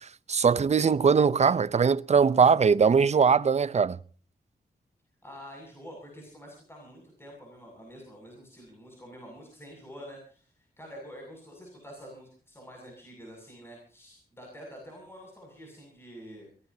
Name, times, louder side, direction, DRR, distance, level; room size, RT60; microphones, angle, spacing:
voice 1, 0.3-4.0, right 6 dB, 45° right, 0.7 m, -21 dB
voice 2, 5.2-16.5, equal, 15° left, 7.1 m, -47 dB
23.0 x 18.5 x 2.8 m
wide cardioid pair, 125°, 16 cm